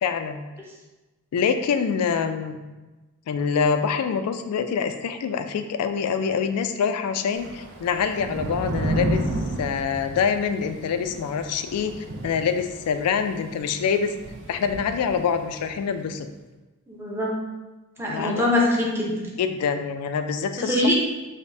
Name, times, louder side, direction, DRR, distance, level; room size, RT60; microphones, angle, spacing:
voice 1, 0.0-0.4 1.3-2.6 3.3-9.3 9.6-14.1 14.5-16.3 18.0-18.5 19.4-20.9, left 6 dB, 85° left, 9 dB, 0.3 m, -25 dB
Thunder / Rain, 7.4-15.7, right 1 dB, 55° right, 0.5 m, -32 dB
voice 2, 16.9-17.3 18.0-19.3 20.6-20.9, left 1 dB, 10° right, -4 dB, 0.7 m, -23 dB
5.0 x 2.1 x 2.6 m, 1.1 s
head